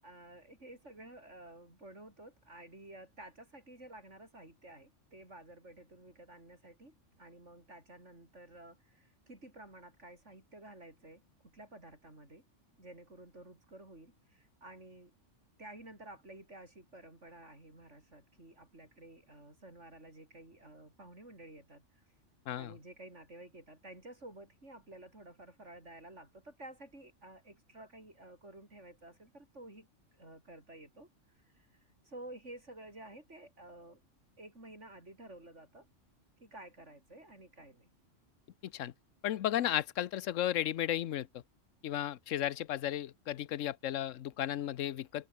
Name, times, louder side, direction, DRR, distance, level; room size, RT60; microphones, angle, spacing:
voice 1, 0.0-12.4 12.8-15.1 15.6-22.1 22.6-29.9 30.1-31.1 31.3-31.7 32.0-34.0 34.4-35.9 36.4-37.9, right 1 dB, 70° right, 7.0 m, -52 dB
voice 2, 38.6-38.9 39.2-41.4 41.8-45.3, left 11 dB, 85° left, 1.1 m, -34 dB
omnidirectional pair, 1.3 m